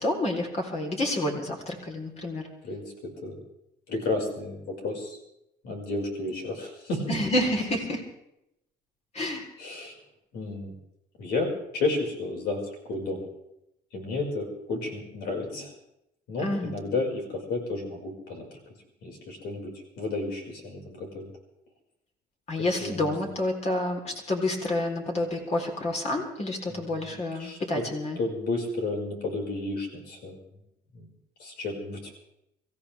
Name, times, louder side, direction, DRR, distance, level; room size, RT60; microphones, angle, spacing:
voice 1, 0.0-2.5 7.1-8.0 9.1-9.5 16.4-16.8 22.5-28.2, left 1 dB, 40° left, 2 dB, 3.7 m, -29 dB
voice 2, 3.9-5.2 5.6-7.2 9.6-9.9 10.3-10.7 11.2-12.6 12.9-13.3 13.9-15.7 16.3-18.5 19.0-19.7 20.0-21.3 22.8-23.1 26.7-27.8 28.2-30.4 30.9-31.1 31.4-32.1, left 2 dB, 85° left, 1 dB, 5.3 m, -32 dB
25.5 x 15.0 x 3.4 m, 0.83 s
cardioid pair, 110°, 17 cm